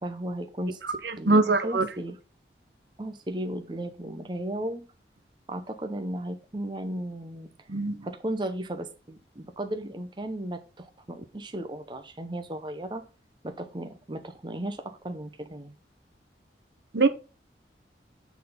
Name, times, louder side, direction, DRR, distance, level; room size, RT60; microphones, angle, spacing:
voice 1, 0.0-2.2 3.0-4.9 5.5-7.5 8.0-13.0 13.4-15.8, right 1 dB, 25° right, 0.8 m, -35 dB
voice 2, 1.0-1.9 7.7-8.0 16.9-17.1, right 3 dB, 75° right, 1.0 m, -22 dB
9.2 x 4.0 x 5.3 m
head